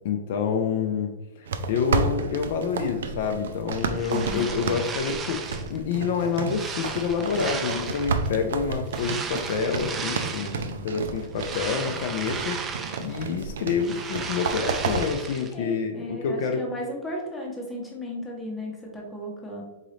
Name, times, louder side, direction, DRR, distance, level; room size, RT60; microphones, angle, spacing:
voice 1, 0.0-1.1 1.4-16.7, left 6 dB, 55° left, 5 dB, 0.5 m, -28 dB
sound 1, 1.5-15.1, right 5 dB, 90° right, 0.4 m, -32 dB
sound 2, 3.7-5.8 6.2-8.3 8.9-10.7 11.1-13.3 13.6-15.5, right 5 dB, 15° right, 0.3 m, -35 dB
voice 2, 4.1-4.5 15.5-19.6, equal, 5° left, -2 dB, 0.8 m, -35 dB
4.0 x 3.8 x 3.1 m, 1.0 s
supercardioid pair, 170°, 0 cm